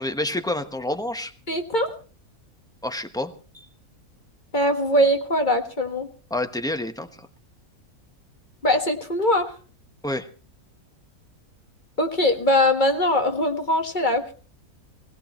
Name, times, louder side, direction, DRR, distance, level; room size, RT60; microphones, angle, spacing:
voice 1, 0.0-1.3 2.8-3.7 6.3-7.3 10.0-10.3, left 1 dB, 5° left, 8 dB, 0.9 m, -28 dB
voice 2, 1.5-1.9 4.5-6.1 8.6-9.5 12.0-14.3, left 1 dB, 35° left, 6 dB, 1.6 m, -21 dB
21.0 x 17.5 x 3.1 m, 0.37 s
omnidirectional pair, 1.5 m